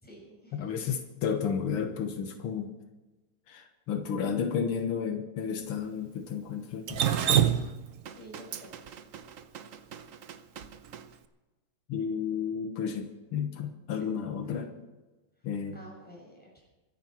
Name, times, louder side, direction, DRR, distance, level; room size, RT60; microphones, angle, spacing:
voice 1, 0.0-0.7 8.1-9.0 13.9-14.1 15.7-16.7, equal, 5° left, -2 dB, 5.8 m, -51 dB
voice 2, 0.5-2.7 3.5-7.0 7.3-7.4 11.9-14.7 15.4-15.8, left 7 dB, 85° left, 5 dB, 2.1 m, -32 dB
Drip, 6.9-11.0, right 9 dB, 70° right, 0.7 m, -28 dB
24.5 x 10.0 x 4.5 m, 1.1 s
omnidirectional pair, 2.4 m